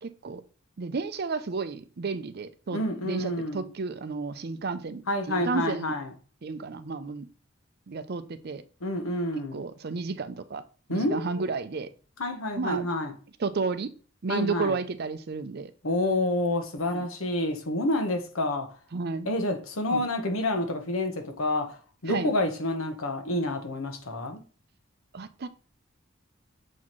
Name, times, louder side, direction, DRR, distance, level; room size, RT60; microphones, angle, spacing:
voice 1, 0.0-0.4 0.8-5.9 6.4-7.3 7.9-8.6 9.5-10.6 10.9-11.9 12.6-12.9 13.4-13.9 14.2-15.7 16.9-17.1 18.9-19.3 19.9-20.0 22.1-22.3 25.1-25.5, right 4 dB, 50° right, 0.5 m, -32 dB
voice 2, 2.7-3.7 5.1-6.1 8.8-9.6 10.9-11.5 12.2-13.1 14.3-14.8 15.8-18.7 19.2-24.4, left 1 dB, 85° left, 1.2 m, -28 dB
7.2 x 4.2 x 3.1 m
head